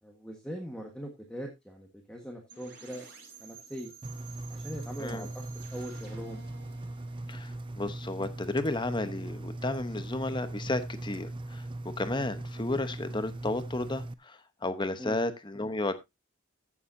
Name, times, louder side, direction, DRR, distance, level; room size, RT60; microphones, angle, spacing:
voice 1, 0.0-3.1 3.4-3.9 4.5-5.4 5.7-6.4 15.0-15.2, equal, 5° left, 2 dB, 1.4 m, -41 dB
sound 1, 2.5-8.3, right 6 dB, 50° right, 6.5 m, -52 dB
Engine, 4.0-14.1, right 1 dB, 25° right, 0.5 m, -39 dB
voice 2, 7.3-11.6 12.0-16.0, left 2 dB, 20° left, 11 dB, 0.9 m, -33 dB
15.0 x 7.2 x 2.7 m, 0.21 s
head